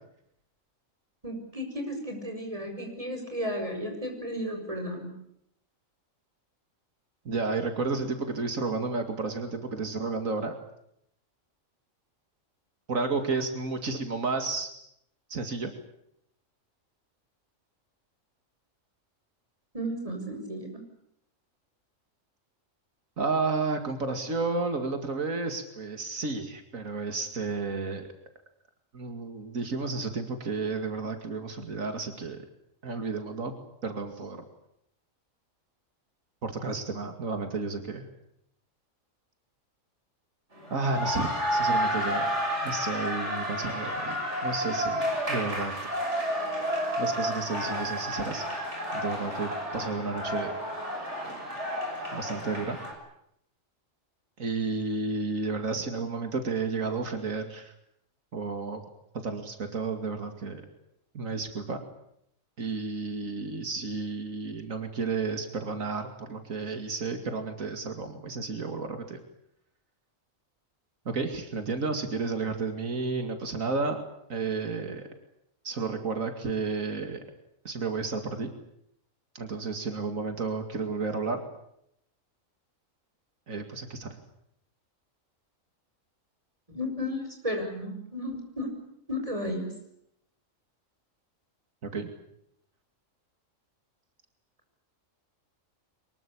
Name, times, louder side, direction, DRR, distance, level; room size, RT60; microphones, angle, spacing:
voice 1, 1.2-5.1 19.7-20.8 86.7-88.7 89.1-89.7, equal, 25° right, 3 dB, 6.5 m, -33 dB
voice 2, 7.3-10.6 12.9-14.7 15.3-15.7 23.2-28.1 28.9-32.4 32.8-33.5 33.8-34.4 36.4-38.1 40.7-42.3 42.6-45.7 47.0-48.5 48.9-50.5 52.1-52.8 54.4-57.7 58.3-58.8 59.1-60.6 61.1-61.8 62.6-69.2 71.1-74.0 74.3-75.1 75.6-77.2 77.6-78.5 79.3-81.4 83.5-84.1 91.8-92.1, right 4 dB, 85° right, 6 dB, 2.7 m, -32 dB
sound 1, 40.6-52.9, equal, 60° right, 6.6 m, -31 dB
24.5 x 21.5 x 8.6 m, 0.75 s
omnidirectional pair, 1.4 m